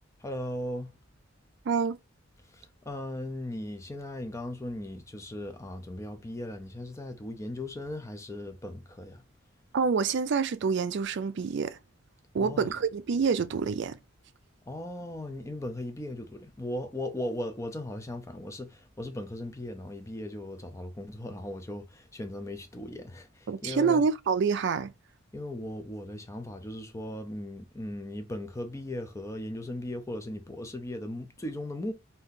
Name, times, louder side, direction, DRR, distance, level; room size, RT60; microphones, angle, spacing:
voice 1, 0.2-0.9 2.5-9.2 12.4-12.7 14.7-24.1 25.3-31.9, left 1 dB, 15° left, 0.5 m, -38 dB
voice 2, 1.7-2.0 9.7-11.8 12.3-14.0 23.5-24.9, right 5 dB, 55° right, 0.4 m, -27 dB
2.8 x 2.7 x 3.5 m
head